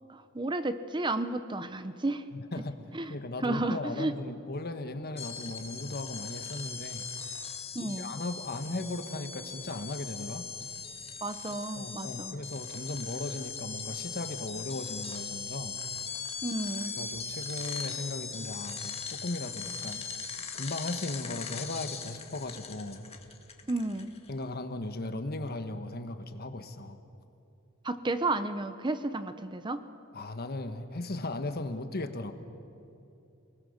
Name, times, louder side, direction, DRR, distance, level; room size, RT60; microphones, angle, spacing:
voice 1, 0.1-2.2 2.9-3.1 3.4-4.1 7.7-8.1 11.2-12.3 16.4-16.9 23.7-24.1 27.8-29.8, right 2 dB, 25° right, 11 dB, 0.8 m, -32 dB
voice 2, 2.3-2.8 3.1-7.3 7.9-10.5 11.8-15.8 16.9-20.1 20.5-23.1 24.3-27.0 30.1-32.3, left 2 dB, 50° left, 9 dB, 1.3 m, -37 dB
sound 1, 5.2-24.3, left 5 dB, 30° left, 1.8 m, -40 dB
30.0 x 20.0 x 6.6 m, 2.9 s
head